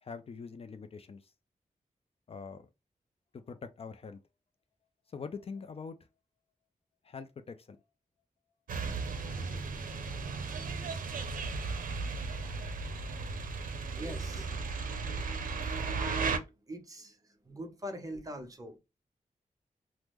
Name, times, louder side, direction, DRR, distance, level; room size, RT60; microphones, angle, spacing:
voice 1, 0.0-1.3 2.3-2.7 3.3-4.2 5.1-6.0 7.0-7.8, left 5 dB, 45° left, 0.4 m, -44 dB
sound 1, 8.7-16.4, right 4 dB, 90° right, 0.5 m, -35 dB
voice 2, 13.9-14.5 15.1-15.3 15.9-17.2 17.5-18.8, equal, 25° right, 0.7 m, -42 dB
3.4 x 2.0 x 2.9 m
wide cardioid pair, 140°, 14 cm